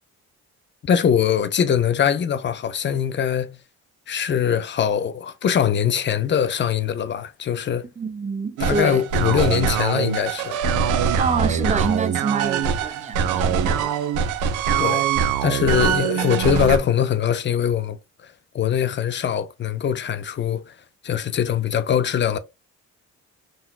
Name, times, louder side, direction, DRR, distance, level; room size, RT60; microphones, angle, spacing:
voice 1, 0.8-3.6 4.1-7.9 8.6-10.6 14.8-15.1 15.4-18.0 18.5-20.7 21.0-22.4, left 8 dB, 40° left, 0.4 m, -22 dB
voice 2, 8.0-9.0 11.2-14.0, right 4 dB, 25° right, 0.5 m, -27 dB
sound 1, 8.6-16.8, right 7 dB, 90° right, 0.5 m, -23 dB
3.8 x 2.2 x 2.3 m
cardioid pair, 90°, 30 cm